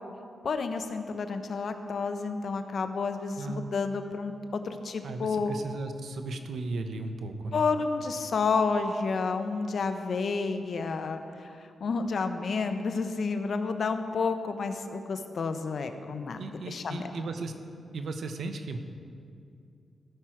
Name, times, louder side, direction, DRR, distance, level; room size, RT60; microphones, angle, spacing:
voice 1, 0.4-5.5 7.5-16.4 16.7-17.1, left 4 dB, 60° left, 8 dB, 0.7 m, -30 dB
voice 2, 3.4-3.7 5.0-7.6 16.4-17.5 17.9-18.8, right 3 dB, 75° right, 7 dB, 0.8 m, -36 dB
15.5 x 6.2 x 4.5 m, 2.4 s
cardioid pair, 95°, 0 cm